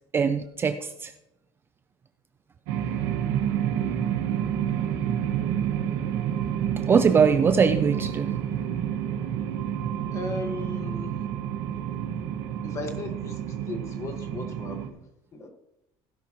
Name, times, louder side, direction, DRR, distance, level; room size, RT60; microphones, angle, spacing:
voice 1, 0.1-1.1 6.9-8.3, right 6 dB, 20° right, 9 dB, 0.5 m, -21 dB
sound 1, 2.7-14.9, right 9 dB, 80° right, 1.7 m, -29 dB
voice 2, 10.1-11.3 12.6-15.5, left 2 dB, 30° left, 5 dB, 1.6 m, -37 dB
16.5 x 11.0 x 3.1 m, 0.88 s
cardioid pair, 160°, 11 cm